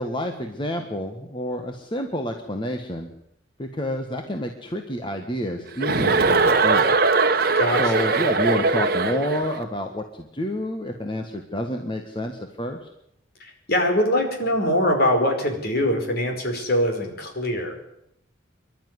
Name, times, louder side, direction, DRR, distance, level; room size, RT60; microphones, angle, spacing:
voice 1, 0.0-3.1 3.6-7.3 7.8-12.9, equal, 25° left, 4 dB, 1.5 m, -29 dB
Chuckle chortle, 5.8-9.5, right 3 dB, 50° right, 1.4 m, -20 dB
voice 2, 7.5-8.2 13.4-17.7, equal, 50° left, 4 dB, 4.9 m, -23 dB
25.0 x 12.0 x 9.7 m, 0.78 s
head